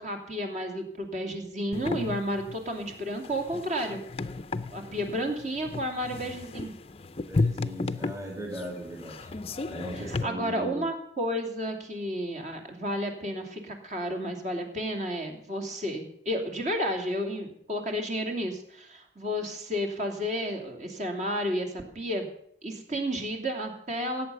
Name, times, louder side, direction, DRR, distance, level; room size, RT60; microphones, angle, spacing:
voice 1, 0.0-4.0 4.7-6.7 10.2-22.3 22.6-24.3, equal, 40° right, 4 dB, 2.7 m, -32 dB
sound 1, 1.7-10.2, left 3 dB, 30° left, 0.5 m, -33 dB
voice 2, 7.2-9.3 9.7-10.9, right 1 dB, 20° right, 0 dB, 2.1 m, -38 dB
18.0 x 8.4 x 6.7 m, 0.67 s
head